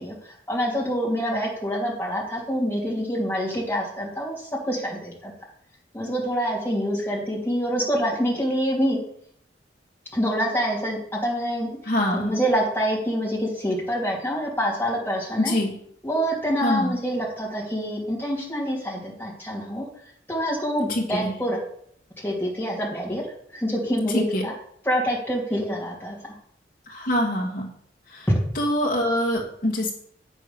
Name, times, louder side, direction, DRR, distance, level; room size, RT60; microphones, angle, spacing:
voice 1, 0.0-5.3 5.9-9.0 10.1-11.7 12.1-15.5 16.0-19.9 20.3-21.6 22.2-23.3 23.5-24.5 24.9-26.3, equal, 10° left, -3 dB, 2.6 m, -26 dB
voice 2, 11.8-12.4 15.4-15.8 16.6-17.0 20.9-21.4 24.1-24.4 26.9-27.7 28.1-28.3 28.5-29.9, left 1 dB, 50° left, -3 dB, 1.4 m, -25 dB
8.4 x 5.6 x 6.6 m, 0.66 s
head